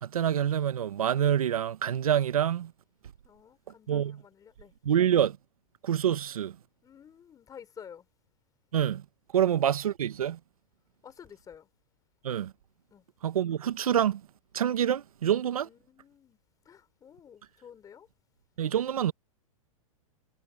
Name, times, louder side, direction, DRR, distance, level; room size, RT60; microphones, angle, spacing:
voice 1, 0.0-2.7 3.9-4.2 4.8-5.4 5.8-6.6 8.7-9.0 9.3-10.4 12.2-12.5 13.2-14.2 14.5-15.7 18.6-19.1, right 10 dB, 90° right, 1.1 m, -26 dB
voice 2, 3.2-4.7 6.8-8.1 9.3-9.5 11.0-11.7 12.9-13.0 15.6-16.4 16.7-18.1, left 8 dB, 20° left, 3.6 m, -51 dB
hypercardioid pair, 130°, 18 cm